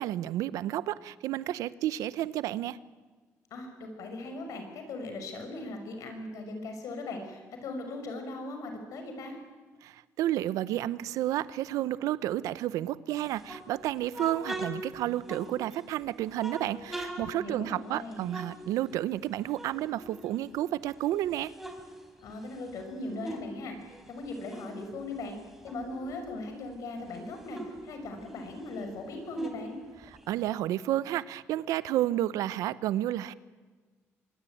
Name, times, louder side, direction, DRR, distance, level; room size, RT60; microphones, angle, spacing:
voice 1, 0.0-2.8 9.8-21.5 30.3-33.3, right 13 dB, 90° right, 17 dB, 0.8 m, -31 dB
voice 2, 3.5-9.4 17.3-18.4 22.2-25.4 25.6-29.8, left 2 dB, 75° left, 5 dB, 6.0 m, -39 dB
sound 1, 13.2-15.9 16.3-19.2 19.5-20.9 21.2-23.5 23.8-26.4 26.7-26.8 27.1-30.5, right 1 dB, 5° right, 4.3 m, -42 dB
25.0 x 22.0 x 9.3 m, 1.4 s
cardioid pair, 80°, 6 cm